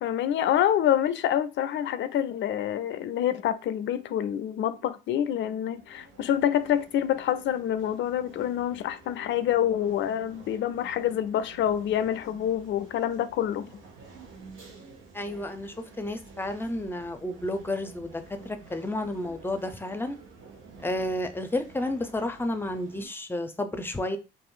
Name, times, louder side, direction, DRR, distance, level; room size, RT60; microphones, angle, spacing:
voice 1, 0.0-13.7, left 10 dB, 70° left, 0.4 m, -27 dB
sound 1, 5.7-23.1, right 4 dB, 85° right, 1.0 m, -50 dB
voice 2, 15.1-20.2 20.8-24.2, left 1 dB, 10° left, 0.5 m, -31 dB
2.6 x 2.5 x 3.7 m
cardioid pair, 90°, 20 cm